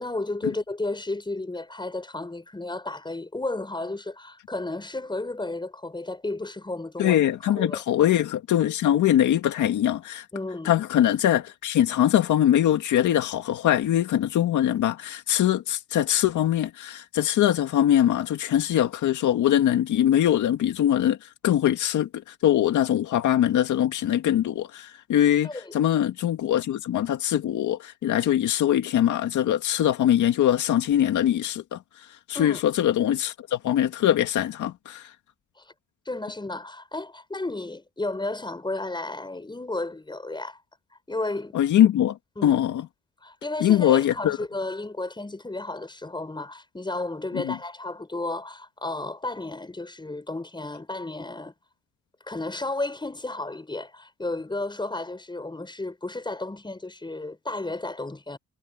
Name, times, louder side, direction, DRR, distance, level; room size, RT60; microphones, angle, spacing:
voice 1, 0.0-7.2 7.5-7.8 10.3-10.8 25.4-25.7 32.3-32.6 35.6-35.7 36.0-40.6 41.1-41.6 42.4-42.6 43.2-51.5 52.3-58.4, left 2 dB, 15° left, 6.5 m, -33 dB
voice 2, 7.0-10.3 10.6-35.1 41.5-42.2 42.4-42.9 43.6-44.4 47.3-47.6, left 11 dB, 75° left, 2.1 m, -22 dB
cardioid pair, 90°, 30 cm